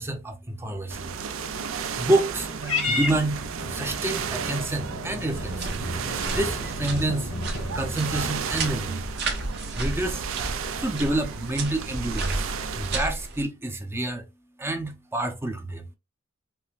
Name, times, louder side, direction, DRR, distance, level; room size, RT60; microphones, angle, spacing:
voice 1, 0.0-5.9 6.2-9.1 9.7-10.3 10.8-14.3 14.6-15.9, right 1 dB, 10° right, 0.6 m, -29 dB
sound 1, 0.9-13.0, right 6 dB, 75° right, 0.4 m, -33 dB
Purr / Meow, 2.6-9.1, left 2 dB, 90° left, 1.5 m, -33 dB
sound 2, 5.3-13.4, right 2 dB, 55° right, 1.1 m, -33 dB
5.5 x 2.1 x 2.4 m
head